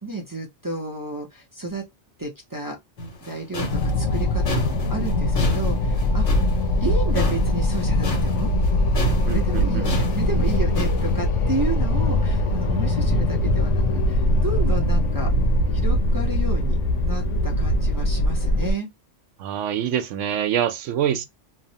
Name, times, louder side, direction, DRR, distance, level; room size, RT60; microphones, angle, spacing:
voice 1, 0.0-1.8 2.2-2.8 3.2-6.5 6.8-8.5 9.1-15.3 15.7-18.9, right 2 dB, 30° right, 0.4 m, -31 dB
sound 1, 3.0-8.7 8.9-11.1, equal, 70° left, 1.3 m, -30 dB
sound 2, 3.7-18.7, left 1 dB, 90° left, 0.9 m, -21 dB
voice 2, 9.3-9.9 19.4-21.3, right 10 dB, 85° right, 0.9 m, -25 dB
2.8 x 2.0 x 2.7 m
omnidirectional pair, 1.2 m